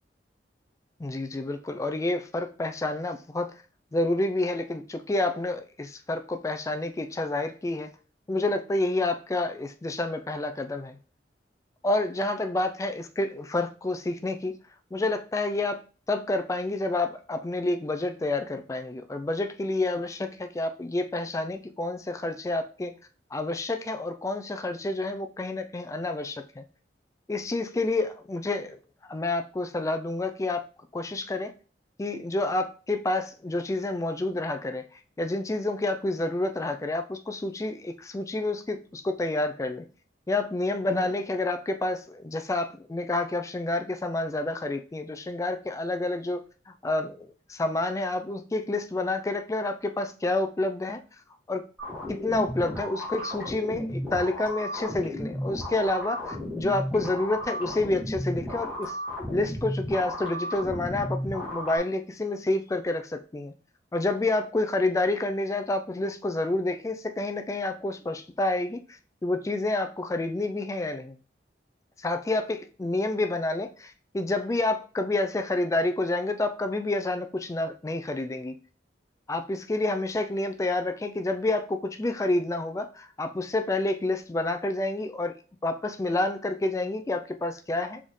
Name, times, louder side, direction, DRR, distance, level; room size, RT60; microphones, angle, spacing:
voice 1, 1.0-3.5 3.9-7.9 8.3-11.0 11.8-14.5 14.9-15.8 16.1-22.9 23.3-26.6 27.3-28.8 29.1-30.7 30.9-31.5 32.0-34.8 35.2-39.8 40.3-46.4 46.7-51.0 51.5-51.6 52.1-59.0 59.3-63.5 63.9-71.2 72.0-78.6 79.3-85.3 85.6-88.0, left 2 dB, 20° left, 7 dB, 0.3 m, -29 dB
sound 1, 51.8-61.8, equal, 10° right, 1.7 m, -34 dB
4.3 x 3.5 x 3.1 m, 0.38 s
head